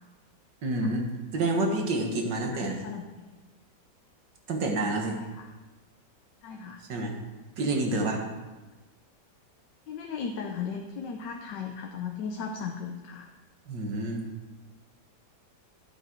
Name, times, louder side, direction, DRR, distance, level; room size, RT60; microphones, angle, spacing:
voice 1, 0.6-2.8 4.5-5.2 6.9-7.2 7.6-8.2 13.7-14.2, right 2 dB, 80° right, 2 dB, 2.0 m, -28 dB
voice 2, 2.6-3.3 5.2-5.5 6.4-6.8 9.9-13.2, left 6 dB, 85° left, 2 dB, 1.4 m, -36 dB
12.0 x 7.7 x 4.6 m, 1.2 s
omnidirectional pair, 1.9 m